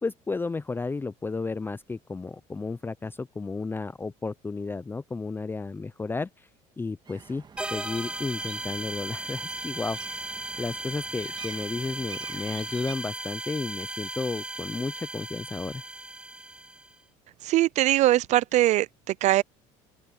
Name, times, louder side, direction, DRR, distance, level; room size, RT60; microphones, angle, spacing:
voice 1, 0.0-6.5 6.8-7.4 7.7-10.0 10.6-15.8, left 3 dB, 15° left, 0.6 m, -33 dB
sound 1, 7.0-12.9, right 6 dB, 30° right, 1.8 m, -47 dB
sound 2, 7.6-16.9, right 1 dB, 5° right, 1.8 m, -36 dB
voice 2, 17.4-19.4, right 15 dB, 55° right, 0.4 m, -22 dB
open air
supercardioid pair, 100°, 14 cm